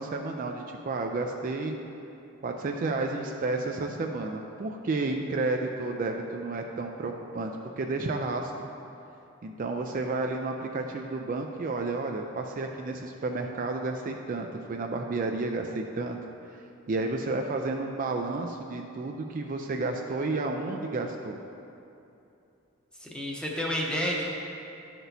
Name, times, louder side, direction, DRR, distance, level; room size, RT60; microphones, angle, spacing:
voice 1, 0.0-1.8 2.4-7.5 7.8-8.7 9.4-16.2 16.5-16.6 16.9-21.4, right 3 dB, 40° right, 3 dB, 0.4 m, -31 dB
voice 2, 23.0-24.2, equal, 5° left, -2 dB, 0.8 m, -30 dB
11.0 x 6.0 x 2.7 m, 2.7 s
head